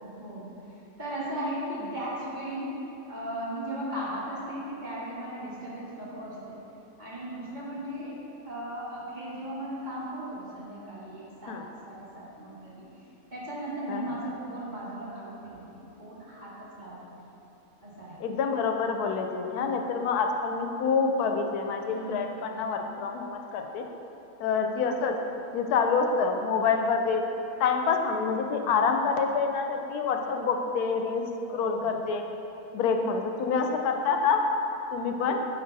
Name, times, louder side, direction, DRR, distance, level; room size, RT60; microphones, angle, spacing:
voice 1, 0.0-0.5 1.0-2.8 3.1-6.6 7.0-8.2 8.4-11.6 11.8-12.9 13.3-15.6 16.0-17.2 17.8-18.2 24.6-24.7 31.5-32.0, right 1 dB, 35° right, -7 dB, 1.2 m, -37 dB
voice 2, 18.2-23.9 24.4-25.2 25.5-27.3 27.6-31.2 31.5-32.2 32.7-34.4 34.9-35.4, left 5 dB, 85° left, 4 dB, 1.1 m, -27 dB
Sigh, 21.7-22.3, right 3 dB, 60° right, 1.2 m, -42 dB
8.6 x 3.8 x 4.0 m, 2.9 s
omnidirectional pair, 1.6 m